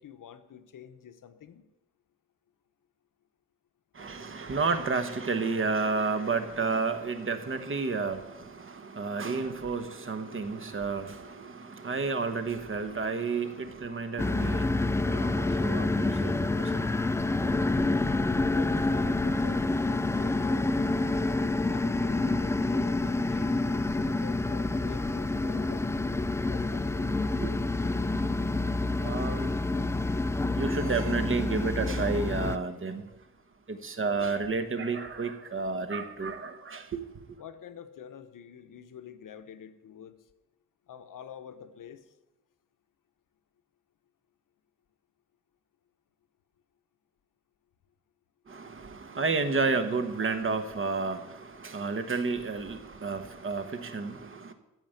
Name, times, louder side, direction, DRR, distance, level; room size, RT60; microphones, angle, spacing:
voice 1, 0.0-1.6 18.5-20.7 21.7-25.9 26.5-27.2 37.4-40.2 40.9-42.0, left 9 dB, 75° left, 1.0 m, -47 dB
voice 2, 3.9-17.0 23.4-23.5 27.4-27.6 29.0-29.6 30.4-33.1 33.7-37.4 48.5-54.5, right 4 dB, 40° right, 1.1 m, -31 dB
sound 1, 14.2-32.6, left 2 dB, 10° left, 0.3 m, -28 dB
14.0 x 5.1 x 9.1 m
wide cardioid pair, 125°, 32 cm